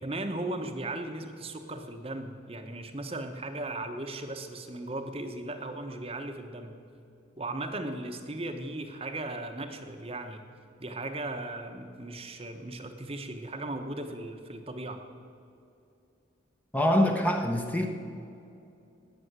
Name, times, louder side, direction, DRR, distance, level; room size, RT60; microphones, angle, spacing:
voice 1, 0.0-6.8 7.4-10.4 10.8-15.0, right 2 dB, 30° right, 6 dB, 0.9 m, -37 dB
voice 2, 16.7-17.9, left 1 dB, 10° left, 4 dB, 0.8 m, -24 dB
18.0 x 7.0 x 9.4 m, 2.6 s
head